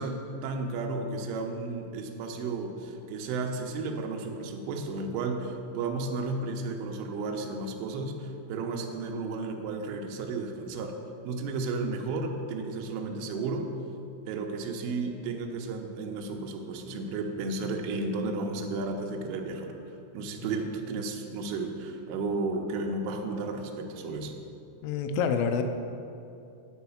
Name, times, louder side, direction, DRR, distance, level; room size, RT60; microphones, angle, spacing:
voice 1, 0.0-10.9 11.2-13.7 14.3-19.7 20.1-24.4, right 3 dB, 80° right, 3 dB, 3.3 m, -33 dB
voice 2, 24.8-25.6, left 6 dB, 85° left, 7 dB, 3.1 m, -27 dB
10.5 x 4.8 x 7.0 m, 2.6 s
omnidirectional pair, 5.8 m